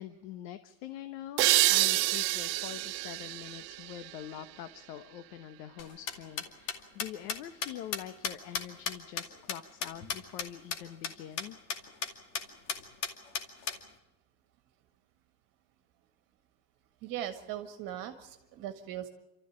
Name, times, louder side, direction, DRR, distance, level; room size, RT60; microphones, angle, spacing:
voice 1, 0.0-11.6, left 11 dB, 75° left, 11 dB, 1.2 m, -45 dB
sound 1, 1.4-4.8, right 19 dB, 85° right, 1.1 m, -28 dB
sound 2, 5.8-10.5 10.7-10.8 11.0-11.1 11.4-11.5 11.7-12.1 12.3-12.4 12.7-13.8, left 6 dB, 60° left, 2.5 m, -34 dB
voice 2, 17.0-19.1, right 11 dB, 40° right, 7 dB, 1.8 m, -39 dB
28.0 x 13.5 x 8.8 m, 1.1 s
cardioid pair, 170°, 49 cm